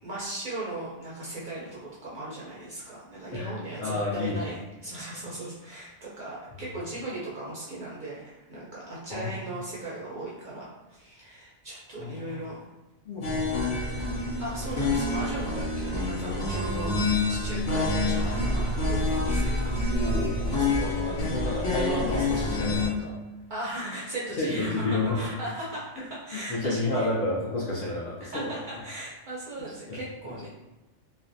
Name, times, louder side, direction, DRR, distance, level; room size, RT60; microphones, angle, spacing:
voice 1, 0.0-12.7 14.4-19.6 20.0-20.1 23.5-27.1 28.2-30.5, right 1 dB, 60° right, -6 dB, 0.5 m, -37 dB
voice 2, 3.8-4.4 9.1-9.4 12.0-12.4 13.1-13.6 19.9-23.1 24.4-25.3 26.5-28.5 29.9-30.0, left 2 dB, 60° left, -5 dB, 0.6 m, -30 dB
sound 1, 13.2-22.9, left 2 dB, 85° left, 1.1 m, -27 dB
2.5 x 2.1 x 2.5 m, 1.1 s
omnidirectional pair, 1.2 m